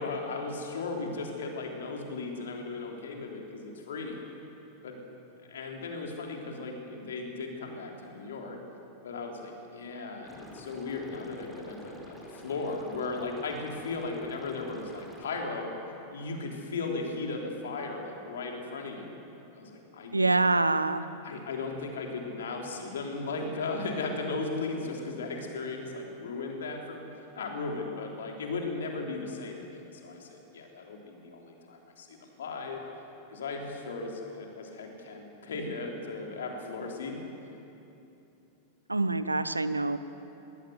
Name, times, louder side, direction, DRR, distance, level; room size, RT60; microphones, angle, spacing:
voice 1, 0.0-4.2 4.8-5.0 5.5-8.6 9.0-15.7 16.1-19.1 19.5-20.2 21.2-27.0 27.4-32.8 33.3-37.2, left 3 dB, 65° left, 1 dB, 3.6 m, -36 dB
Liquid, 10.2-15.2, equal, ahead, 3.5 m, -48 dB
voice 2, 20.1-21.1 38.9-40.0, right 3 dB, 80° right, 14 dB, 0.8 m, -25 dB
21.0 x 18.0 x 8.1 m, 2.9 s
figure-of-eight pair, 90°, 0 cm